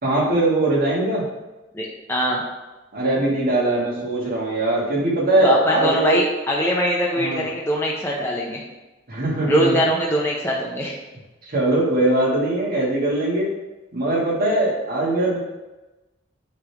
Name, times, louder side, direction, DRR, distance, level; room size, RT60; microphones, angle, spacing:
voice 1, 0.0-1.2 2.9-6.2 7.2-7.4 9.1-9.8 11.5-13.5 13.9-15.4, right 2 dB, 50° right, -5 dB, 2.0 m, -21 dB
voice 2, 1.7-2.4 5.4-8.6 9.4-10.9, equal, 15° left, -3 dB, 0.7 m, -22 dB
9.4 x 3.4 x 3.5 m, 1.1 s
head